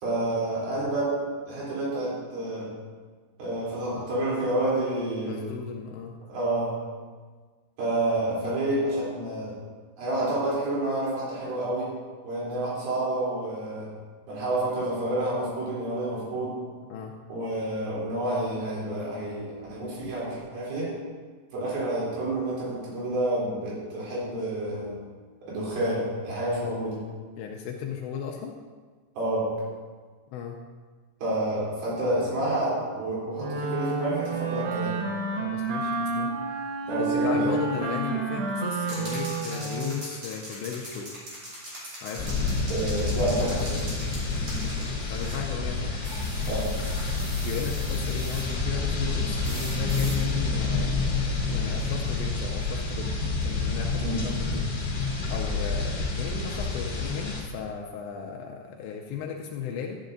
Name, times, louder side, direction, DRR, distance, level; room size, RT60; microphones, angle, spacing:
voice 1, 0.0-1.1 1.5-2.7 3.4-5.5 6.3-6.7 7.8-9.5 10.0-11.9 12.2-13.9 14.3-16.5 17.3-20.9 21.5-24.9 25.5-27.0 29.2-29.5 31.2-35.0 36.9-37.6 42.7-43.9 46.5-46.7 54.0-54.2, right 1 dB, 50° right, -7 dB, 4.8 m, -29 dB
voice 2, 5.2-6.2 16.9-17.1 27.4-28.6 30.3-30.6 35.4-36.3 37.0-41.1 42.0-42.4 44.6-46.0 47.4-53.1 53.4-60.0, left 7 dB, 90° left, 0 dB, 2.5 m, -36 dB
Wind instrument woodwind instrument, 33.4-40.1, right 3 dB, 75° right, 3.3 m, -29 dB
sound 1, 38.8-45.5 46.0-48.6 49.4-50.2, equal, 35° right, 3.4 m, -41 dB
sound 2, 42.2-57.4, left 3 dB, 45° left, 1.1 m, -28 dB
12.5 x 10.0 x 2.6 m, 1.5 s
omnidirectional pair, 5.7 m